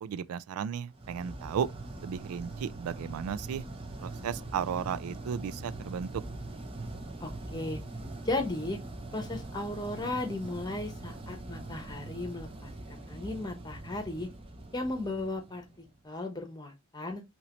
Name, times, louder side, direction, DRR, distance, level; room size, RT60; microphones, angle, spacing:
voice 1, 0.0-1.7 2.0-3.6 4.0-6.2, right 7 dB, 90° right, 0.3 m, -34 dB
sound 1, 1.0-16.0, right 2 dB, 25° right, 0.7 m, -42 dB
voice 2, 7.2-7.8 8.2-8.8 9.1-14.3 14.7-17.2, left 2 dB, 20° left, 1.0 m, -36 dB
5.6 x 3.0 x 3.0 m
head